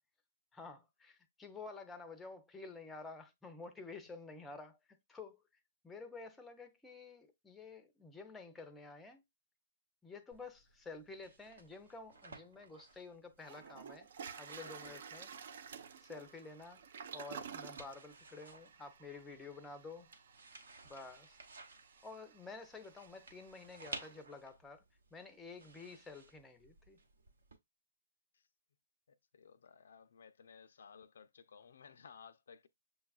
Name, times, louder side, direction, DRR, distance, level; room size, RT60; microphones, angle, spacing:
voice 1, 0.5-5.4 5.8-9.2 10.0-14.1 14.4-15.3 16.0-16.8 17.1-20.1 20.8-21.4 22.0-24.8 25.1-27.0, left 4 dB, 5° left, 0.5 m, -51 dB
sound 1, 10.3-27.5, right 3 dB, 75° right, 0.9 m, -56 dB
Toilet flush, 12.9-13.0 13.4-24.2, right 7 dB, 55° right, 0.4 m, -52 dB
voice 2, 14.5-15.0 29.3-32.7, left 6 dB, 70° left, 0.4 m, -57 dB
6.6 x 2.3 x 2.3 m
hypercardioid pair, 145°, 0 cm